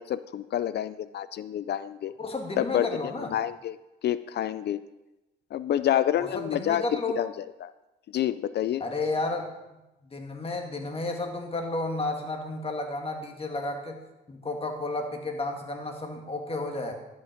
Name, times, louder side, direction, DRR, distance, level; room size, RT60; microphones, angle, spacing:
voice 1, 0.0-2.1 2.6-2.9 3.3-3.7 4.0-4.8 5.5-7.7 8.1-8.8, left 11 dB, 60° left, 15 dB, 0.4 m, -28 dB
voice 2, 2.2-3.3 6.1-7.2 8.8-9.5 10.0-14.0 14.3-16.9, left 2 dB, 30° left, 3 dB, 1.9 m, -32 dB
12.5 x 5.8 x 5.1 m, 0.99 s
cardioid pair, 90°, 20 cm